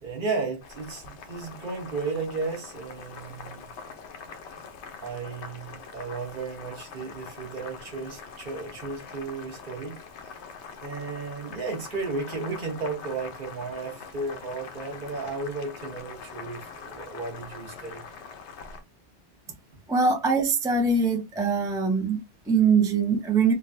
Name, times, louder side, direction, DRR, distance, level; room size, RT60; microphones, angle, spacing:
voice 1, 0.0-3.7 5.0-10.0 10.8-18.0, right 4 dB, 50° right, 1.0 m, -34 dB
Boiling, 0.6-18.8, left 5 dB, 80° left, 1.0 m, -43 dB
voice 2, 19.9-23.5, right 4 dB, 5° right, 0.3 m, -23 dB
3.6 x 2.2 x 2.5 m
omnidirectional pair, 1.1 m